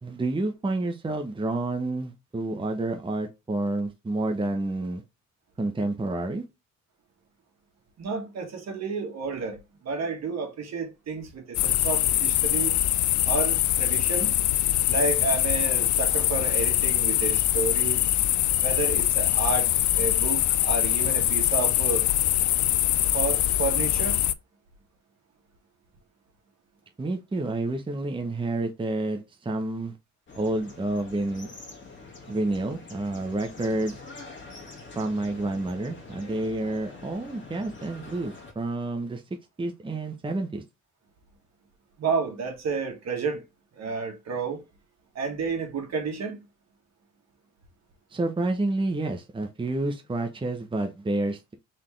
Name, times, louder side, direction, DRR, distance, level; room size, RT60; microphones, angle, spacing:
voice 1, 0.0-5.0 5.6-6.4 27.0-29.9 30.3-31.5 32.3-34.0 35.0-39.2 39.6-40.6 48.1-51.5, right 2 dB, 15° right, 0.8 m, -29 dB
voice 2, 8.0-12.7 13.2-14.4 14.9-18.0 18.6-22.1 23.1-24.2 42.0-43.4 43.7-44.6 45.2-46.4, right 4 dB, 60° right, 1.7 m, -31 dB
sound 1, 11.5-24.3, left 14 dB, 70° left, 0.5 m, -23 dB
sound 2, 30.3-38.5, left 3 dB, 40° left, 2.0 m, -45 dB
4.1 x 3.6 x 3.2 m
cardioid pair, 90°, 30 cm